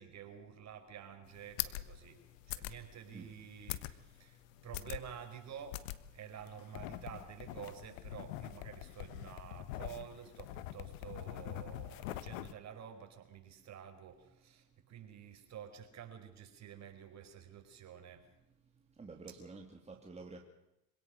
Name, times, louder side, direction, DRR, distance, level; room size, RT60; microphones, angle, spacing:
voice 1, 0.0-2.2 2.5-5.8 6.1-18.2, right 9 dB, 45° right, 6 dB, 4.9 m, -50 dB
sound 1, 1.3-12.5, left 15 dB, 75° left, 1.5 m, -44 dB
voice 2, 19.0-20.5, right 3 dB, 15° right, 2 dB, 2.6 m, -49 dB
26.0 x 17.5 x 6.5 m, 0.90 s
supercardioid pair, 95°, 39 cm